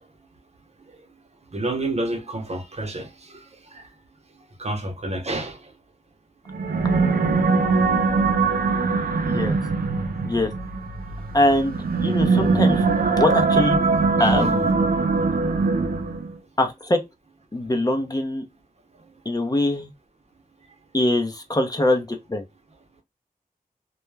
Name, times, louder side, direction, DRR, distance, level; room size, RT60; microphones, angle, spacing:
voice 1, 1.5-3.4 3.7-3.9 4.6-5.6 14.2-14.4, right 2 dB, 45° right, 0.7 m, -29 dB
sound 1, 6.5-16.3, right 4 dB, 80° right, 0.5 m, -21 dB
voice 2, 11.3-11.8 12.0-12.8 13.2-13.8 14.2-14.8 16.6-17.0 17.5-18.4 19.3-19.9 20.9-22.4, left 1 dB, 25° left, 0.6 m, -22 dB
2.3 x 2.1 x 3.1 m
wide cardioid pair, 85°, 15 cm